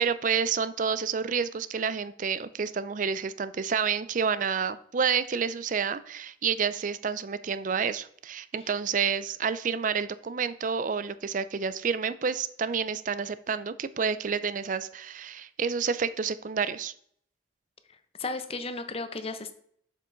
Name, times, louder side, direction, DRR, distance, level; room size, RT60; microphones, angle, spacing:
voice 1, 0.0-16.9, right 6 dB, 40° right, 15 dB, 0.4 m, -29 dB
voice 2, 17.9-19.5, left 3 dB, 30° left, 10 dB, 0.7 m, -35 dB
7.6 x 7.0 x 3.8 m, 0.63 s
head